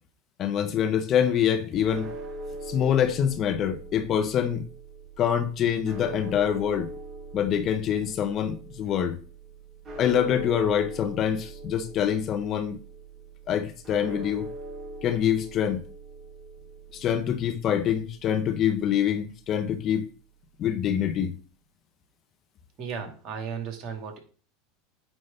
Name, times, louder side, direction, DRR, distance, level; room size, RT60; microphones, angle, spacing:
voice 1, 0.4-2.1 2.7-4.6 5.2-6.9 7.3-9.2 10.0-12.8 13.5-14.5 15.0-15.8 16.9-20.1 20.6-21.4, left 9 dB, 45° left, 1.1 m, -25 dB
sound 1, 1.9-20.1, right 2 dB, 25° right, 2.4 m, -42 dB
voice 2, 22.8-24.2, right 6 dB, 45° right, 2.4 m, -35 dB
9.1 x 3.5 x 5.6 m
hypercardioid pair, 95°, 0 cm